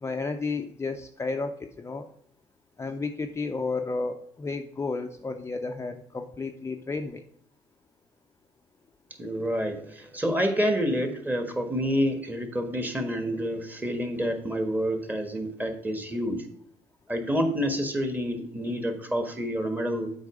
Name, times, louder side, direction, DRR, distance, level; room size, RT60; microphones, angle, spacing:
voice 1, 0.0-2.0 2.8-7.2, left 3 dB, 20° left, 5 dB, 0.6 m, -32 dB
voice 2, 9.2-16.5 17.1-20.1, equal, 15° right, 6 dB, 1.5 m, -28 dB
8.0 x 4.7 x 4.9 m, 0.67 s
supercardioid pair, 70°, 13 cm